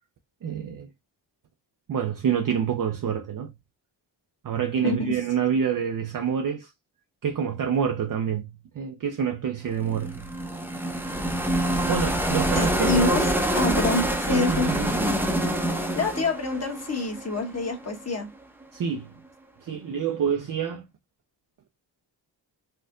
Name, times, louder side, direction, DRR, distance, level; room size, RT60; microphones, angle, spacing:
voice 1, 0.4-0.9 1.9-3.5 4.4-6.7 7.2-10.3 11.9-13.2 14.3-15.0 18.7-19.2 19.6-20.9, right 7 dB, 45° right, 0.5 m, -27 dB
voice 2, 4.8-5.1 12.5-13.2 13.5-14.7 15.9-18.3, left 3 dB, 35° left, 1.2 m, -26 dB
sound 1, 9.8-17.8, right 1 dB, 5° right, 0.6 m, -26 dB
4.3 x 2.5 x 2.4 m
cardioid pair, 50°, 45 cm